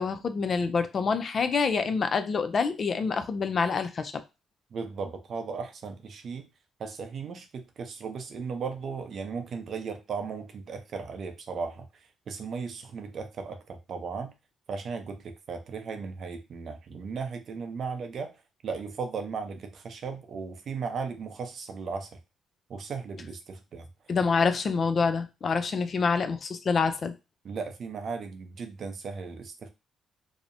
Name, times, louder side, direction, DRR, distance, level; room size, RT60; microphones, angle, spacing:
voice 1, 0.0-4.1 24.1-27.1, left 5 dB, 45° left, 0.3 m, -26 dB
voice 2, 4.7-6.5 6.8-14.3 14.7-18.3 18.6-22.2 22.7-23.9 27.4-29.7, right 5 dB, 55° right, 0.5 m, -36 dB
2.8 x 2.0 x 2.5 m
cardioid pair, 90°, 0 cm